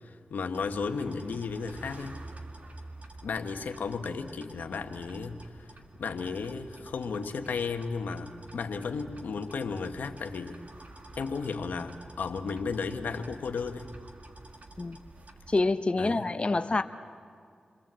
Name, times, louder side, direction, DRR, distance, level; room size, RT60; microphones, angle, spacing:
voice 1, 0.0-2.2 3.2-5.7 6.0-10.6 11.1-13.9 16.0-16.2, left 5 dB, 90° left, 6 dB, 1.2 m, -34 dB
sound 1, 0.5-15.6, right 2 dB, 55° right, 2.0 m, -49 dB
voice 2, 15.5-16.8, left 3 dB, 40° left, 8 dB, 0.8 m, -26 dB
29.0 x 22.5 x 7.6 m, 2.2 s
cardioid pair, 45°, 3 cm